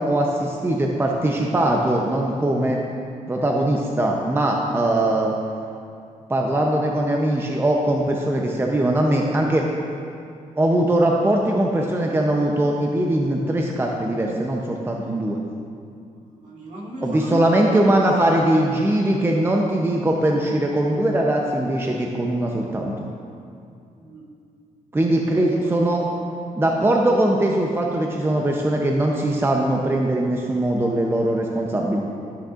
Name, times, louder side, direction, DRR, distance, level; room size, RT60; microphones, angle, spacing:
voice 1, 0.0-2.8 3.3-5.3 6.3-9.6 10.6-15.4 17.0-22.9 24.9-26.0 26.5-32.0, right 1 dB, 15° right, 0 dB, 0.7 m, -21 dB
voice 2, 16.3-18.0 23.9-24.3 25.2-26.2, right 1 dB, 60° right, -5 dB, 2.0 m, -36 dB
14.0 x 6.3 x 2.5 m, 2.4 s
cardioid pair, 90°, 14 cm